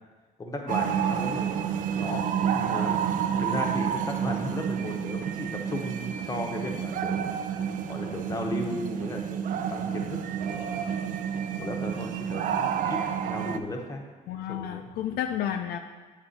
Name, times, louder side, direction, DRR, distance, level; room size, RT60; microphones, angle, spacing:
voice 1, 0.4-1.7 2.0-2.3 2.5-7.3 7.6-9.4 9.7-10.9 11.6-14.0 14.3-15.2, left 1 dB, 20° left, 2 dB, 0.8 m, -36 dB
sound 1, 0.7-13.6, right 8 dB, 50° right, 0.4 m, -29 dB
voice 2, 14.3-15.8, left 10 dB, 70° left, 6 dB, 0.4 m, -31 dB
8.0 x 3.4 x 4.0 m, 1.4 s
cardioid pair, 110°, 17 cm